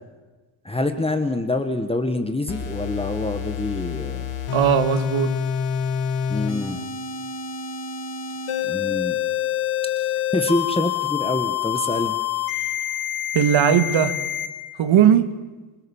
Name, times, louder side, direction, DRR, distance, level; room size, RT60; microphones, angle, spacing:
voice 1, 0.6-4.3 6.3-6.8 8.6-9.2 10.0-12.4, left 2 dB, 10° left, 1.8 m, -26 dB
sound 1, 2.5-14.5, left 9 dB, 85° left, 5.4 m, -27 dB
voice 2, 4.5-5.3 13.3-14.2 14.8-15.4, right 9 dB, 70° right, 2.3 m, -18 dB
28.0 x 24.0 x 7.4 m
cardioid pair, 130°, 48 cm